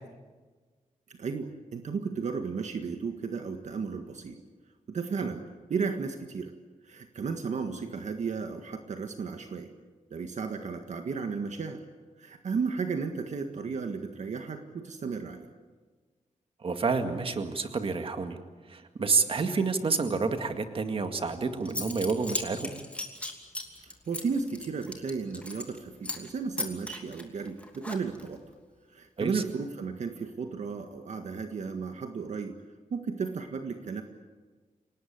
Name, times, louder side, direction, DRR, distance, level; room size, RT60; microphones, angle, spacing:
voice 1, 1.1-4.4 4.9-5.4 5.7-6.5 6.8-9.7 10.1-11.8 12.2-15.5 23.8-28.4 28.9-32.6 32.9-34.0, right 5 dB, 60° right, 5 dB, 1.7 m, -34 dB
voice 2, 16.6-18.4 18.7-22.7 29.2-29.4, right 4 dB, 45° right, 7 dB, 2.0 m, -29 dB
Zipper (clothing) / Coin (dropping), 21.3-21.4 21.6-25.8 26.0-26.3 26.6-28.3, left 2 dB, 10° left, 2.8 m, -37 dB
28.0 x 19.0 x 8.7 m, 1.4 s
wide cardioid pair, 150°, 14 cm